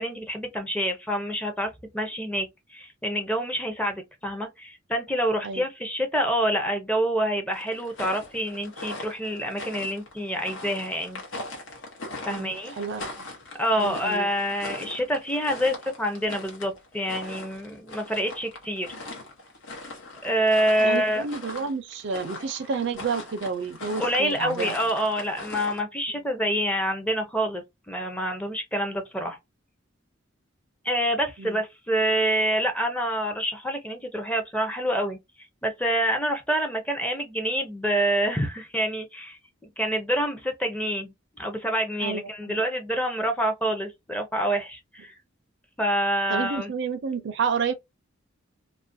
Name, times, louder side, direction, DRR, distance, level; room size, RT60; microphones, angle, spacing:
voice 1, 0.0-11.2 12.3-12.7 13.6-18.9 20.2-21.2 24.0-29.4 30.8-35.2 35.6-45.1 45.8-46.7, equal, 5° left, 0.5 m, -27 dB
sound 1, 7.5-25.8, left 2 dB, 80° left, 0.9 m, -40 dB
voice 2, 12.3-13.0 13.8-14.3 20.8-24.8 31.4-31.6 42.0-42.6 46.3-47.7, right 5 dB, 60° right, 0.4 m, -30 dB
2.3 x 2.1 x 2.5 m
head